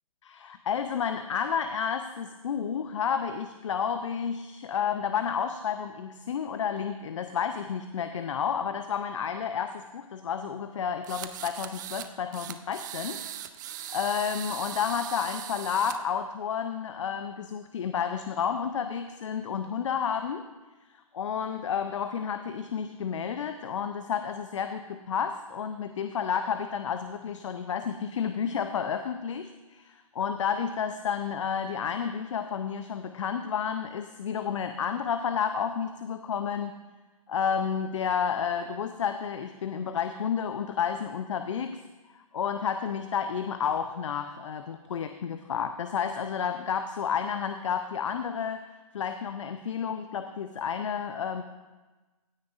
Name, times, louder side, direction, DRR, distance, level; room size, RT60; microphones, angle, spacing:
voice 1, 0.2-13.2 13.7-20.4 21.1-36.7 37.3-41.8 42.3-48.6 48.9-51.4, left 7 dB, 55° left, 8 dB, 0.6 m, -31 dB
sound 1, 11.0-12.1 12.3-16.0, right 11 dB, 30° right, 0.5 m, -39 dB
16.0 x 9.5 x 2.5 m, 1.2 s
figure-of-eight pair, 135°, 18 cm